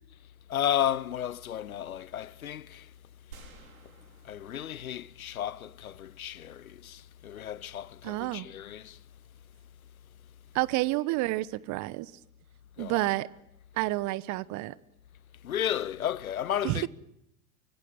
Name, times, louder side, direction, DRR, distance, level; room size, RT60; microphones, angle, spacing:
voice 1, 0.5-2.9 4.2-9.0 12.8-13.1 15.4-16.9, left 10 dB, 80° left, 0.9 m, -33 dB
sound 1, 3.3-5.6, right 4 dB, 75° right, 4.1 m, -54 dB
voice 2, 8.0-8.5 10.5-12.1 12.8-13.3 13.7-14.8 16.6-16.9, right 19 dB, 45° right, 1.1 m, -29 dB
24.5 x 24.0 x 7.3 m
figure-of-eight pair, 80°, 42 cm